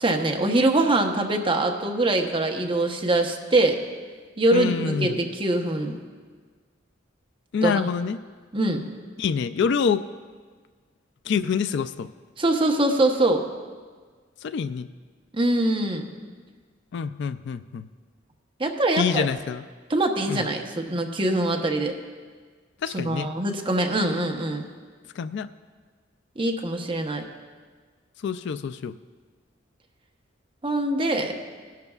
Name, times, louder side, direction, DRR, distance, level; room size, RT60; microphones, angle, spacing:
voice 1, 0.0-3.8 4.4-6.0 7.6-7.8 8.5-8.8 12.4-13.4 15.3-16.0 18.6-19.3 19.9-21.9 22.9-24.6 26.4-27.2 30.6-31.3, right 2 dB, 25° right, 3 dB, 0.9 m, -23 dB
voice 2, 4.5-5.2 7.5-8.2 9.2-10.1 11.3-12.1 14.4-14.9 16.9-17.9 19.0-19.6 20.3-20.5 22.8-23.3 25.1-25.5 28.2-29.0, left 6 dB, 65° left, 14 dB, 0.3 m, -26 dB
18.0 x 10.5 x 2.4 m, 1.5 s
head